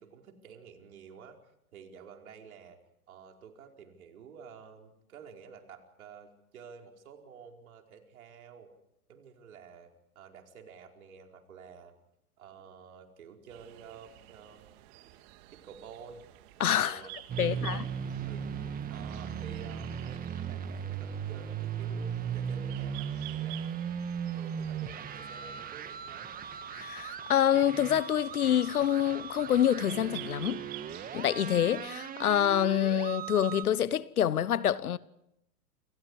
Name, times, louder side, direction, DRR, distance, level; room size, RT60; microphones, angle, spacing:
voice 1, 0.0-1.4 1.7-2.8 3.1-8.7 9.1-11.9 12.4-14.6 15.5-16.2 16.8-17.9 18.3-18.5 18.9-23.9 24.3-26.3, right 6 dB, 70° right, 4.9 m, -51 dB
sound 1, 13.5-31.9, right 16 dB, 45° right, 2.1 m, -51 dB
voice 2, 16.6-17.0 17.4-17.8 26.7-30.6 31.1-35.0, left 10 dB, 80° left, 1.2 m, -27 dB
sound 2, 17.3-33.6, right 7 dB, 20° right, 1.8 m, -37 dB
29.0 x 27.0 x 4.9 m
hypercardioid pair, 115°, 44 cm